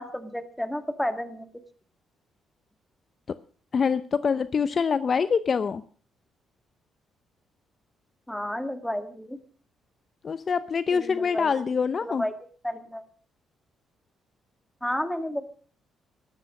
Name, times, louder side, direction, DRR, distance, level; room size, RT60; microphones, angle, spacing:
voice 1, 0.0-1.5 8.3-9.4 10.9-11.6 12.0-12.3 12.6-13.0 14.8-15.4, equal, 5° left, 9 dB, 2.1 m, -31 dB
voice 2, 3.7-5.8 10.2-12.2, left 6 dB, 45° left, 14 dB, 0.7 m, -25 dB
13.5 x 12.5 x 6.5 m, 0.43 s
cardioid pair, 90°, 0 cm